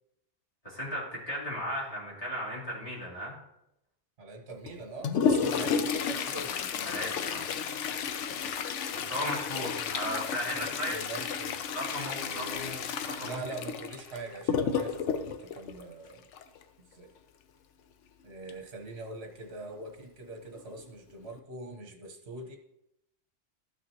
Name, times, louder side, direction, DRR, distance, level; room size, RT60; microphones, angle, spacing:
voice 1, 0.6-3.3 5.5-5.6 6.8-7.5 8.9-11.0 11.7-13.4, equal, 30° left, -7 dB, 3.2 m, -36 dB
voice 2, 4.2-6.6 9.5-10.1 10.5-11.5 12.1-12.7 13.2-16.3 16.8-17.1 18.2-22.6, right 2 dB, 65° right, 3 dB, 1.4 m, -43 dB
Toilet flush, 4.6-16.6 18.5-18.6 18.9-19.0 19.8-19.9 20.6-20.8 21.2-21.4, left 6 dB, 85° left, 1.0 m, -32 dB
13.0 x 6.1 x 3.0 m, 0.84 s
omnidirectional pair, 1.2 m